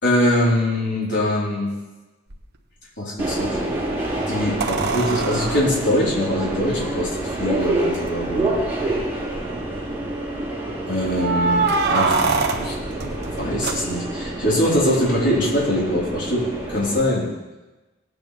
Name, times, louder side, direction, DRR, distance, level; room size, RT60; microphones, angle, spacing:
voice 1, 0.0-1.7 3.0-3.7 4.3-8.5 10.9-12.2 12.6-12.7 13.4-17.3, left 1 dB, 60° left, -6 dB, 4.2 m, -22 dB
sound 1, 2.3-2.4 4.6-7.0 7.9-8.0 8.3-8.4 9.0-9.5 11.2-14.3 16.8-16.9, right 4 dB, 55° right, 1.1 m, -25 dB
Subway metro underground, 3.2-17.0, right 1 dB, 10° right, 3.0 m, -27 dB
18.5 x 9.0 x 3.5 m, 1.1 s
head